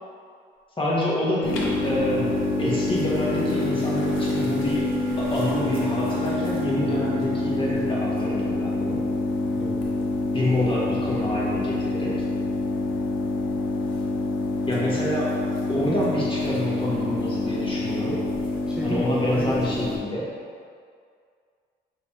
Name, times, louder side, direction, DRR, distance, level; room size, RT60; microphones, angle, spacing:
voice 1, 0.8-4.8 5.2-9.0 10.3-12.2 14.7-15.3 15.7-18.2 18.8-20.3, left 1 dB, 25° left, -6 dB, 1.3 m, -27 dB
sound 1, 1.4-20.0, left 2 dB, 80° left, 0.7 m, -26 dB
Wind instrument woodwind instrument, 1.5-7.5, right 2 dB, 90° right, 0.4 m, -36 dB
voice 2, 9.6-9.9 18.6-19.9, equal, 5° right, -5 dB, 0.4 m, -33 dB
5.2 x 3.0 x 3.1 m, 2.2 s
cardioid pair, 90°, 20 cm